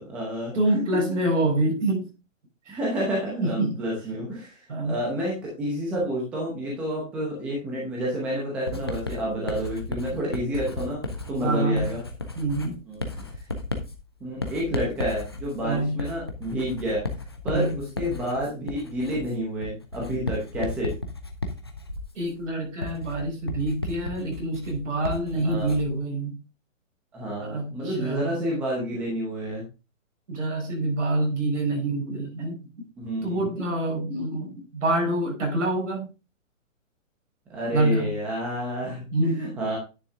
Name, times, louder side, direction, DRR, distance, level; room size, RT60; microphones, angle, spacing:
voice 1, 0.0-0.8 2.7-11.0 11.3-12.0 12.9-13.2 14.2-17.0 17.4-20.9 25.3-25.7 27.1-29.6 33.0-33.5 37.5-39.8, equal, 5° right, 0.8 m, -29 dB
voice 2, 0.5-2.1 2.7-2.8 3.4-3.8 4.7-4.9 11.4-11.9 12.4-12.8 15.6-16.0 17.5-17.8 22.1-26.4 27.4-28.3 30.3-32.6 33.2-36.1 37.7-38.1 39.1-39.5, right 2 dB, 65° right, 5.8 m, -26 dB
Writing, 8.7-26.0, left 2 dB, 20° left, 0.5 m, -34 dB
9.7 x 6.2 x 3.6 m
hypercardioid pair, 175°, 39 cm